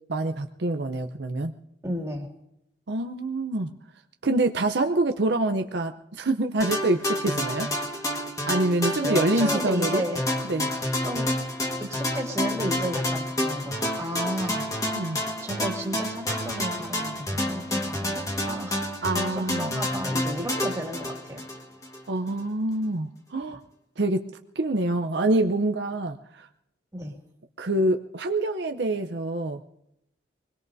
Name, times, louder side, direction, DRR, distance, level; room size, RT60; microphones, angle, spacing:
voice 1, 0.1-1.6 2.9-3.7 4.2-7.7 8.5-10.0 10.5-10.7 15.0-15.2 19.0-19.7 22.1-23.6 24.0-26.5 27.6-29.6, right 2 dB, 70° right, 5 dB, 0.7 m, -26 dB
voice 2, 1.8-2.3 9.0-10.2 11.0-11.3 11.8-14.7 15.4-18.9 19.3-21.4 26.9-27.1, equal, 15° right, -1 dB, 2.3 m, -33 dB
sound 1, 6.6-22.0, left 1 dB, 20° left, 1.6 m, -29 dB
25.0 x 21.0 x 2.7 m, 0.83 s
head